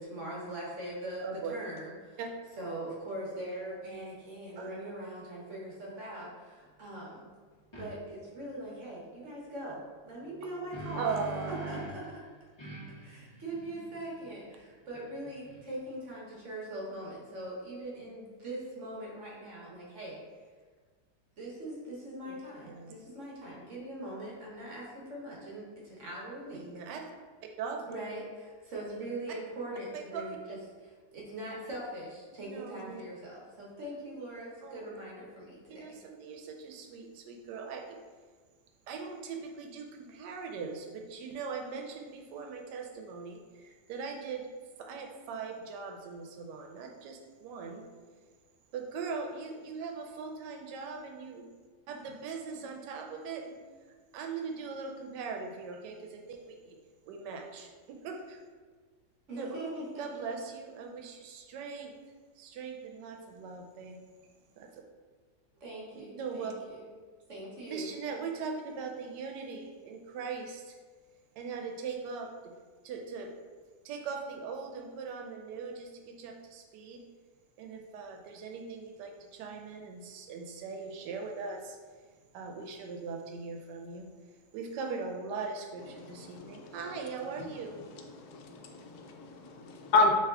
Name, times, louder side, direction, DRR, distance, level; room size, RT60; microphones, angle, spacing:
voice 1, 0.0-1.2 1.5-2.2 2.6-7.3 7.8-11.2 11.7-12.0 13.0-20.2 21.4-26.7 27.9-30.6 31.1-35.8 52.5-52.7 59.3-60.2 65.6-66.9 67.3-67.9, right 1 dB, 55° right, -4 dB, 1.1 m, -41 dB
voice 2, 1.2-1.6 2.2-2.3 4.6-4.7 11.0-11.8 22.2-22.4 22.7-22.9 26.5-27.0 27.6-27.9 29.9-30.3 32.3-33.0 34.6-34.9 35.7-38.0 38.9-44.5 44.8-47.9 48.7-51.5 51.9-53.6 54.1-56.8 57.1-58.4 59.4-59.6 60.0-61.9 62.4-64.0 64.6-64.8 65.9-66.5 67.7-70.8 71.4-72.5 72.8-73.3 73.8-77.0 77.6-81.8 82.3-84.1 84.5-87.8, right 5 dB, 85° right, 3 dB, 1.2 m, -40 dB
sound 1, 7.7-7.9 10.3-12.1 12.6-15.9, right 2 dB, 25° left, 0.6 m, -44 dB
voice 3, 86.3-86.7 88.2-90.1, left 3 dB, 75° left, 3 dB, 1.0 m, -30 dB
3.4 x 3.0 x 3.5 m, 1.5 s
omnidirectional pair, 1.8 m